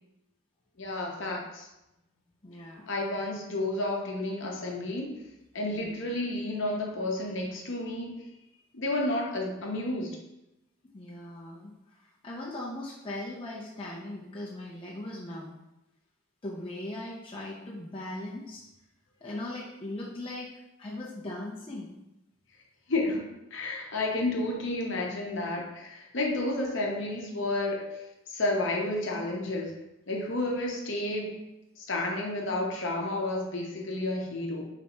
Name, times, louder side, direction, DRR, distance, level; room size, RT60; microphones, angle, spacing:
voice 1, 0.8-1.7 2.9-5.2 5.5-8.2 8.7-10.2 22.9-23.2 23.5-28.0 28.3-29.7 30.1-31.4 31.8-34.6, left 2 dB, 60° left, 0 dB, 0.7 m, -31 dB
voice 2, 2.4-2.9 5.7-5.9 10.9-11.7 12.2-15.5 16.4-18.6 19.2-20.5 20.8-21.9, left 1 dB, 25° left, -5 dB, 0.5 m, -39 dB
3.3 x 2.7 x 4.1 m, 0.92 s
head